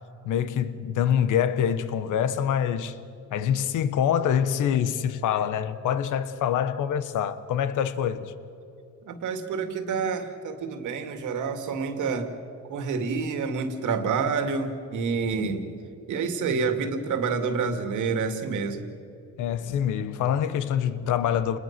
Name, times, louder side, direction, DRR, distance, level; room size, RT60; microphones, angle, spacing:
voice 1, 0.2-3.0 3.3-8.3 19.4-21.6, left 9 dB, 85° left, 1.2 m, -25 dB
voice 2, 9.1-12.3 12.7-15.7 16.1-18.9, right 5 dB, 80° right, 2.4 m, -28 dB
29.0 x 20.5 x 6.0 m
cardioid pair, 90°, 30 cm